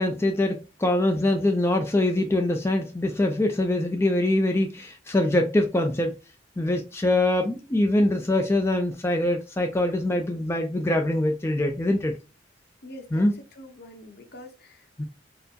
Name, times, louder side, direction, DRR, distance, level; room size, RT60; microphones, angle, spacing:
voice 1, 0.0-6.1 6.6-12.1 13.1-13.3 15.0-15.1, left 1 dB, 15° left, 0.4 m, -23 dB
voice 2, 12.8-15.0, left 1 dB, 60° left, 0.8 m, -45 dB
4.3 x 2.1 x 2.7 m
head